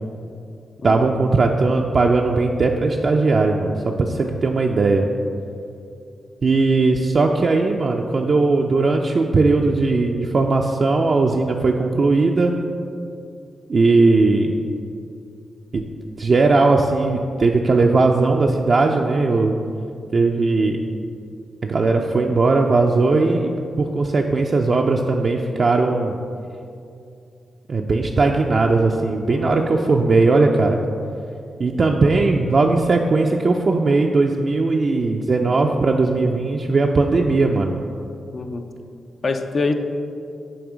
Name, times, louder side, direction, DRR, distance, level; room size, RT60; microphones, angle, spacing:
voice 1, 0.8-5.1 6.4-12.5 13.7-14.6 15.7-15.8 16.2-19.5 20.1-20.8 21.6-23.5 23.8-26.1 27.7-30.8 31.6-37.8, right 3 dB, 55° right, 1 dB, 0.3 m, -18 dB
voice 2, 29.3-29.6 38.3-38.7 39.2-39.7, left 3 dB, 55° left, 6 dB, 0.4 m, -24 dB
7.1 x 2.7 x 4.9 m, 2.4 s
supercardioid pair, 40°, 0 cm